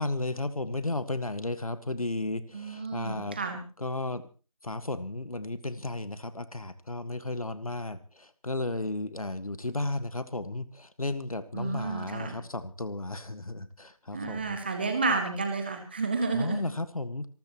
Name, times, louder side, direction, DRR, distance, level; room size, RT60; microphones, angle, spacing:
voice 1, 0.0-3.4 3.8-4.2 4.6-14.6 16.3-17.3, left 2 dB, 75° left, 12 dB, 1.7 m, -34 dB
voice 2, 2.5-3.6 11.5-12.3 14.1-16.6, right 4 dB, 15° right, 5 dB, 1.9 m, -31 dB
27.0 x 13.5 x 3.1 m, 0.36 s
figure-of-eight pair, 170°, 18 cm